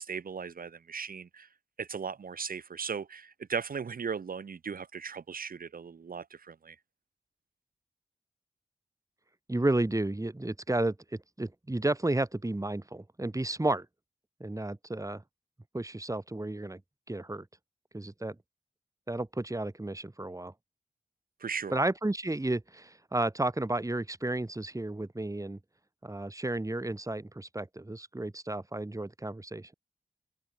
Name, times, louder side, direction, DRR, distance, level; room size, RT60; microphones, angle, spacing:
voice 1, 0.0-1.5 1.8-6.8 21.4-21.8, right 6 dB, 90° right, 2.2 m, -37 dB
voice 2, 9.5-13.9 14.4-15.2 15.7-16.8 17.1-17.5 17.9-18.4 19.1-20.5 21.7-25.6 26.0-29.7, right 2 dB, 20° right, 1.9 m, -32 dB
open air
cardioid pair, 40°, 14 cm